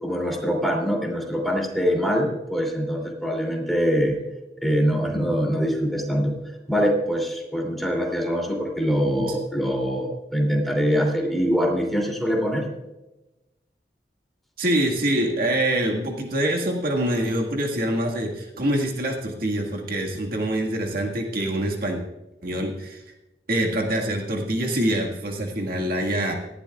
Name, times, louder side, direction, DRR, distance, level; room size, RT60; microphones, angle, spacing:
voice 1, 0.0-4.2 4.6-6.3 6.7-12.7, equal, ahead, 0 dB, 2.9 m, -23 dB
voice 2, 14.6-22.0 22.4-23.0 23.5-26.3, right 1 dB, 60° right, 0 dB, 1.8 m, -25 dB
18.5 x 13.5 x 2.4 m, 1.0 s
head